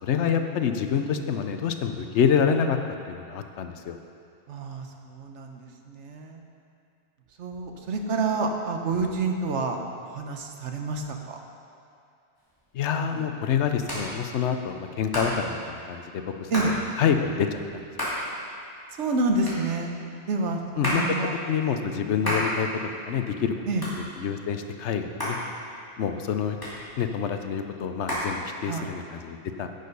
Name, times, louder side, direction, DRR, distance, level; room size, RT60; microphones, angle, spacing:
voice 1, 0.0-2.8 3.1-4.0 12.7-16.5 17.0-17.9 20.8-21.0 21.5-22.7 23.1-23.5 24.2-25.4 26.0-26.6 27.0-29.7, left 7 dB, 80° left, 7 dB, 1.0 m, -27 dB
voice 2, 4.5-6.4 7.4-9.8 10.1-11.4 13.1-13.3 16.5-16.8 18.1-18.3 18.9-20.0 20.3-21.4 22.2-22.4 23.7-23.9 28.6-28.9, right 3 dB, 85° right, 3 dB, 1.2 m, -29 dB
Hands, 12.4-29.0, equal, 20° left, 2.6 m, -35 dB
10.5 x 6.7 x 5.4 m, 2.4 s
omnidirectional pair, 1.2 m